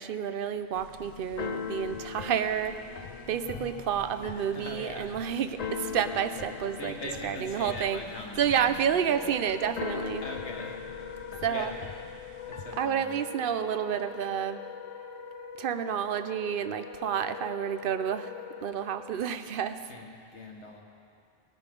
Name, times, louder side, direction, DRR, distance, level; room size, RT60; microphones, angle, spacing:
voice 1, 0.0-2.9 3.3-6.9 7.2-8.0 8.4-10.2 11.4-11.7 12.8-14.6 15.6-18.3 18.6-19.9, right 8 dB, 55° right, 11 dB, 0.7 m, -30 dB
Keyboard (musical), 0.7-12.9, left 6 dB, 45° left, 0.5 m, -41 dB
Singing / Musical instrument, 1.2-11.3, left 2 dB, 20° left, 0.8 m, -51 dB
voice 2, 4.3-5.1 6.8-8.5 10.2-10.8 11.4-11.8 12.5-13.2 19.9-20.8, left 2 dB, 65° left, 0 dB, 1.9 m, -41 dB
Wind instrument woodwind instrument, 9.0-19.1, left 6 dB, 80° left, 1.1 m, -43 dB
20.0 x 9.8 x 5.2 m, 2.4 s
omnidirectional pair, 1.3 m